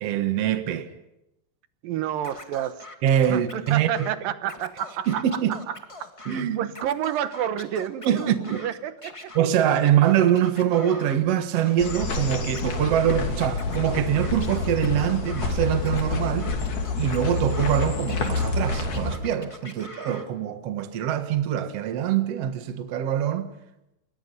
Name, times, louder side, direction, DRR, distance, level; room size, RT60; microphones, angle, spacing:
voice 1, 0.0-0.9 3.0-4.1 5.1-5.5 6.3-6.7 8.1-8.6 9.4-16.5 17.0-23.5, right 10 dB, 55° right, 2.2 m, -24 dB
voice 2, 1.8-2.8 3.3-9.3 19.8-19.9, right 11 dB, 85° right, 2.8 m, -30 dB
Scratching (performance technique), 2.2-4.1 4.4-6.4 6.7-8.7 9.0-11.2 11.6-13.2 13.5-15.5 15.8-17.8 18.1-20.3, left 2 dB, 15° left, 1.0 m, -43 dB
sound 1, 11.8-19.2, left 3 dB, 65° left, 4.3 m, -28 dB
28.0 x 22.5 x 5.5 m
omnidirectional pair, 3.9 m